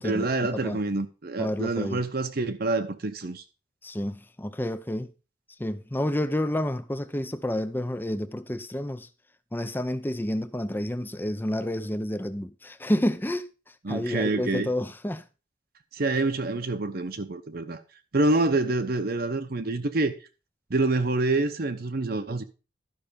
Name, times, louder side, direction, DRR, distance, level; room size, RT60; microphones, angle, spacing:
voice 1, 0.0-3.4 13.8-14.7 15.9-17.8 18.1-20.1 20.7-22.4, right 2 dB, 50° right, 0.8 m, -27 dB
voice 2, 1.4-2.0 3.8-5.1 5.6-9.1 9.5-13.5 13.9-15.2, left 1 dB, 10° left, 0.5 m, -29 dB
12.0 x 5.7 x 5.2 m
head